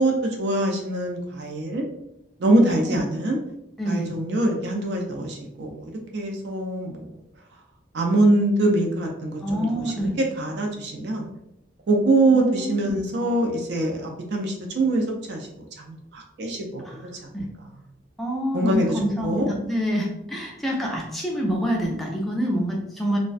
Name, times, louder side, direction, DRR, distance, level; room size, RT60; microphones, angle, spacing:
voice 1, 0.0-1.8 2.4-3.4 3.8-7.1 7.9-10.1 10.4-11.3 11.9-15.5 15.8-16.8 18.5-19.5, right 2 dB, 65° right, 1 dB, 0.4 m, -24 dB
voice 2, 2.5-3.0 3.8-4.1 9.4-10.1 12.3-13.0 16.8-17.0 17.3-17.5 18.2-23.2, equal, ahead, -2 dB, 0.4 m, -26 dB
2.3 x 2.1 x 2.4 m, 0.81 s
head